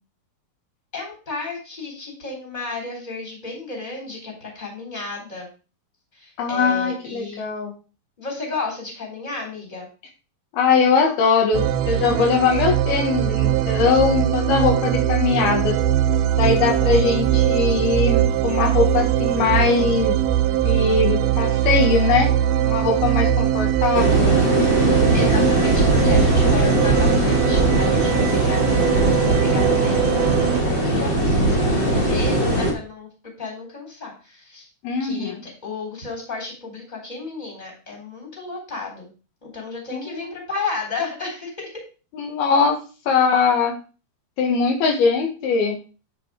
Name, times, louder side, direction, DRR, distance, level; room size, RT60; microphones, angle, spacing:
voice 1, 0.9-5.5 6.1-7.4 8.2-9.9 25.1-33.1 33.4-34.7 35.0-39.1 39.4-41.8, left 3 dB, 10° left, 0 dB, 3.4 m, -33 dB
voice 2, 6.4-7.7 10.5-15.7 16.4-20.2 20.6-22.3 22.6-24.4 34.8-35.4 39.9-40.3 42.1-42.8 43.1-43.7 44.4-45.8, left 5 dB, 80° left, 2 dB, 3.5 m, -21 dB
sound 1, 11.5-30.6, right 11 dB, 80° right, 2.3 m, -21 dB
sound 2, 23.9-32.7, right 1 dB, 30° left, 1.0 m, -20 dB
9.3 x 5.3 x 4.9 m, 0.34 s
omnidirectional pair, 4.4 m